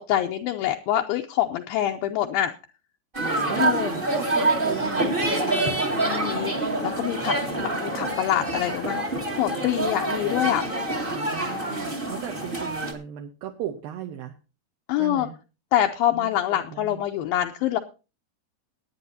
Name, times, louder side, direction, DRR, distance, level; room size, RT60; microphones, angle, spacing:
voice 1, 0.1-2.5 3.6-3.9 5.9-9.0 9.4-10.6 14.9-15.3 15.7-17.8, left 12 dB, 80° left, 3 dB, 2.3 m, -25 dB
sound 1, 3.1-12.9, right 2 dB, 30° right, 1.0 m, -26 dB
voice 2, 3.2-6.0 7.2-7.7 11.1-14.3 15.0-15.4 16.1-17.0, right 10 dB, 75° right, 4 dB, 2.5 m, -36 dB
21.0 x 9.3 x 2.7 m, 0.31 s
omnidirectional pair, 4.5 m